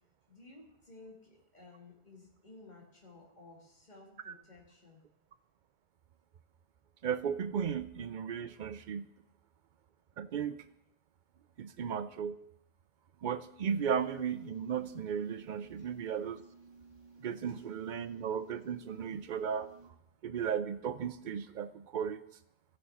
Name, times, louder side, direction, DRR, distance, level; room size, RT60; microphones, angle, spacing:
voice 1, 0.3-5.0 15.8-15.9 17.5-17.6, left 2 dB, 40° left, -1 dB, 2.2 m, -55 dB
voice 2, 7.0-9.0 10.2-10.6 11.6-12.4 13.2-16.4 17.2-19.7 20.2-22.2, right 7 dB, 55° right, 13 dB, 0.6 m, -35 dB
sound 1, 13.6-19.9, right 4 dB, 25° right, 1.3 m, -57 dB
15.0 x 6.4 x 4.3 m, 0.81 s
omnidirectional pair, 1.1 m